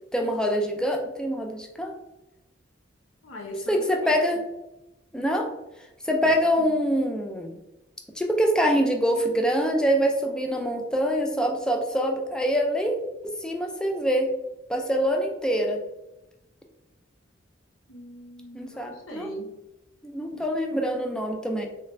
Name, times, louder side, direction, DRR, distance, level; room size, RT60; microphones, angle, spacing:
voice 1, 0.1-2.0 3.7-4.4 5.1-5.5 6.0-7.6 8.2-13.0 13.4-14.3 14.7-15.8 18.5-19.3 20.0-21.7, equal, 5° left, 1 dB, 0.3 m, -25 dB
voice 2, 3.2-4.1 6.3-6.4 6.6-6.8 17.9-19.6 20.3-20.8, equal, 85° left, 2 dB, 0.6 m, -40 dB
3.2 x 3.2 x 2.4 m, 0.95 s
head